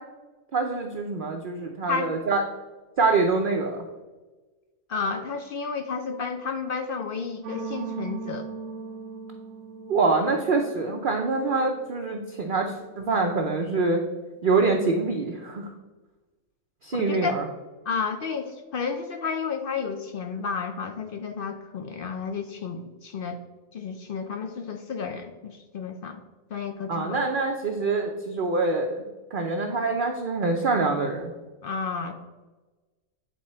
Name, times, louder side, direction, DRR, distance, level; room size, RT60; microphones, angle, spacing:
voice 1, 0.5-2.4 3.0-3.8 9.9-14.0 14.4-15.7 16.8-17.4 26.9-29.0 29.3-31.3, right 3 dB, 50° right, 2 dB, 0.6 m, -25 dB
voice 2, 4.9-8.5 16.9-17.3 17.9-23.4 23.7-26.2 26.5-27.2 31.6-32.1, left 5 dB, 65° left, 6 dB, 0.5 m, -31 dB
sound 1, 7.4-13.7, right 5 dB, 70° right, 1.1 m, -40 dB
9.3 x 3.8 x 4.2 m, 1.2 s
omnidirectional pair, 1.5 m